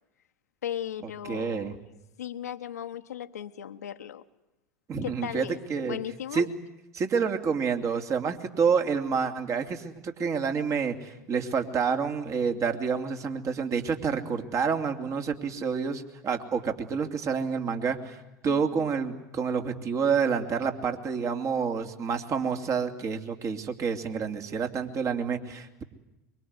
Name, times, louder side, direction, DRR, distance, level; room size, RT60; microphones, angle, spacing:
voice 1, 0.6-1.8 2.2-4.2 5.0-6.5 18.5-18.9, left 10 dB, 85° left, 7 dB, 1.3 m, -37 dB
voice 2, 1.3-1.7 4.9-6.0 6.3-6.5 6.9-18.2 18.4-25.8, right 6 dB, 40° right, 5 dB, 3.0 m, -28 dB
24.0 x 23.5 x 9.8 m, 0.94 s
hypercardioid pair, 85°, 8 cm